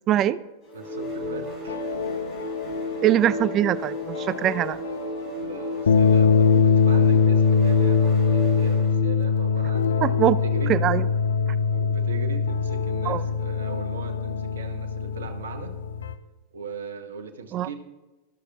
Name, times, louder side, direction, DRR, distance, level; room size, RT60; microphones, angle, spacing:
voice 1, 0.1-0.4 3.0-4.8 10.0-10.4 10.7-11.0 13.1-13.2 17.5-17.7, right 12 dB, 40° right, 17 dB, 0.4 m, -22 dB
sound 1, 0.7-9.1, left 1 dB, 35° left, 3.7 m, -33 dB
voice 2, 0.7-1.8 2.9-3.0 5.4-10.7 11.7-15.7 16.5-17.7, right 5 dB, 75° right, 7 dB, 1.1 m, -39 dB
sound 2, 1.2-16.1, left 5 dB, 80° left, 0.6 m, -23 dB
13.0 x 6.5 x 3.6 m, 1.1 s
hypercardioid pair, 95°, 0 cm